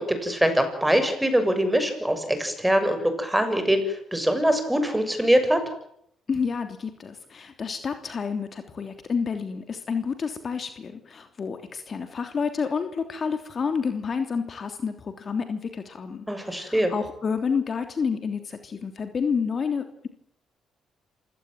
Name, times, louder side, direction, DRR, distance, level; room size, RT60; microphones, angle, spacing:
voice 1, 0.0-5.6 16.3-16.9, equal, 5° right, 8 dB, 6.9 m, -23 dB
voice 2, 6.3-20.1, left 5 dB, 45° left, 7 dB, 3.1 m, -29 dB
27.0 x 17.0 x 9.3 m, 0.72 s
cardioid pair, 75°, 0 cm